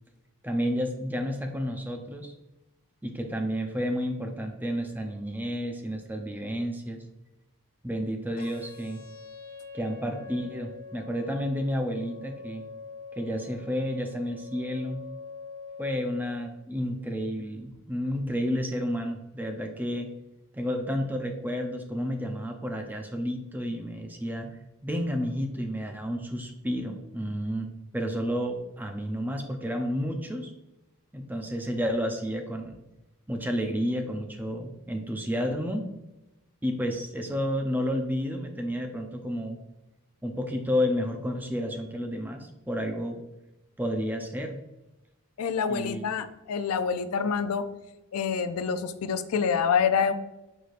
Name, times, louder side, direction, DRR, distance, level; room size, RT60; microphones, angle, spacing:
voice 1, 0.4-2.3 3.0-7.0 7.8-9.0 9.7-12.6 13.2-15.0 15.8-20.1 20.5-24.5 24.8-27.7 27.9-30.5 31.1-32.8 33.3-35.9 36.6-39.6 40.2-43.2 43.8-44.6 45.7-46.0, equal, 10° right, 3 dB, 0.4 m, -31 dB
sound 1, 8.4-16.4, left 5 dB, 45° left, 1.0 m, -44 dB
voice 2, 45.4-47.6 48.1-50.1, left 6 dB, 90° left, 10 dB, 0.4 m, -26 dB
4.8 x 4.1 x 2.5 m, 0.97 s
head